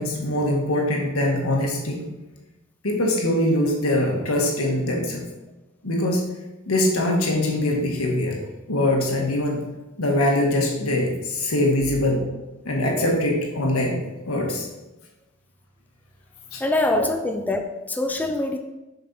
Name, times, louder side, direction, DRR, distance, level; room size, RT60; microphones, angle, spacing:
voice 1, 0.0-2.0 2.8-5.2 5.8-6.2 6.7-8.4 8.7-9.6 10.0-12.2 12.6-14.0 14.3-14.7 16.5-16.6 16.9-17.0, left 1 dB, 85° left, 0 dB, 1.6 m, -22 dB
voice 2, 16.6-18.6, left 2 dB, 10° left, 4 dB, 0.4 m, -24 dB
6.8 x 5.4 x 4.3 m, 1.1 s
head